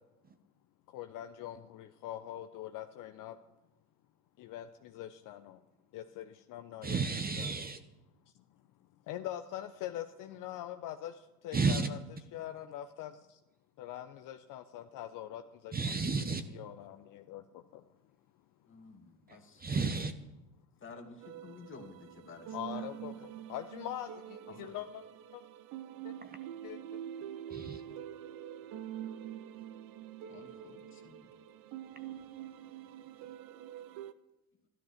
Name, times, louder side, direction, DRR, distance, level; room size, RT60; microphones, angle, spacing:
voice 1, 0.9-3.4 4.4-5.6 5.9-7.0 7.4-7.6 9.1-12.0 12.3-13.4 13.8-15.8 16.5-17.9 22.5-25.0 25.3-25.4 26.0-26.1 26.6-27.0, left 12 dB, 45° left, 8 dB, 0.9 m, -43 dB
voice 2, 6.8-7.8 11.5-11.9 15.7-16.4 19.3-20.1 26.2-26.4 27.5-27.8, right 4 dB, 20° right, 9 dB, 1.1 m, -32 dB
voice 3, 18.7-19.7 20.8-22.9 23.2-23.3 24.5-24.7 30.3-31.3, left 4 dB, 25° left, 4 dB, 2.5 m, -52 dB
sound 1, 21.2-34.1, right 10 dB, 50° right, 0.9 m, -45 dB
13.5 x 12.5 x 5.9 m, 0.95 s
hypercardioid pair, 80°, 45 cm